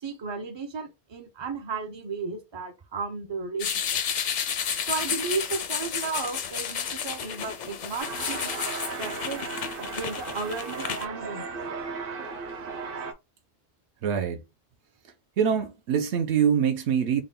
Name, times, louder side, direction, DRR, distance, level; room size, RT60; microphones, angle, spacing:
voice 1, 0.0-4.0 4.9-8.5 9.0-9.4 9.8-11.5, right 4 dB, 45° right, 0.3 m, -34 dB
sound 1, 3.6-11.1, left 7 dB, 60° left, 0.5 m, -31 dB
sound 2, 8.0-13.1, right 4 dB, 60° right, 0.7 m, -36 dB
voice 2, 14.0-14.4 15.4-17.2, right 8 dB, 85° right, 0.9 m, -24 dB
3.7 x 2.2 x 3.7 m
omnidirectional pair, 1.1 m